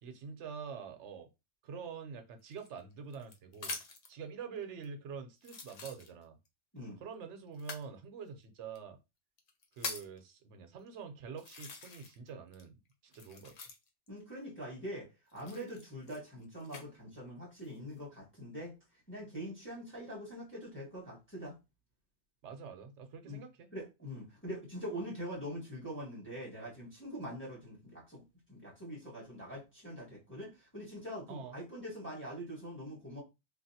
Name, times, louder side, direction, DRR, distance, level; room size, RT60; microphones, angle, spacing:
voice 1, 0.0-1.3 1.6-3.8 4.1-6.4 7.0-9.0 9.8-12.7 13.0-13.5 22.4-23.7 31.3-31.5, right 6 dB, 70° right, 0.9 m, -46 dB
sound 1, 2.5-4.1 4.8-4.9 5.4-6.5 7.5-7.9 8.8-8.9 9.4-10.2 10.9-11.0 11.4-12.3 12.5-14.1 15.3-16.9 17.5-18.0, left 3 dB, 50° left, 0.5 m, -45 dB
voice 2, 14.1-18.8 19.1-21.6 23.2-23.4 23.7-28.2 28.5-33.2, equal, 10° left, 1.3 m, -43 dB
3.3 x 2.5 x 2.7 m
omnidirectional pair, 1.3 m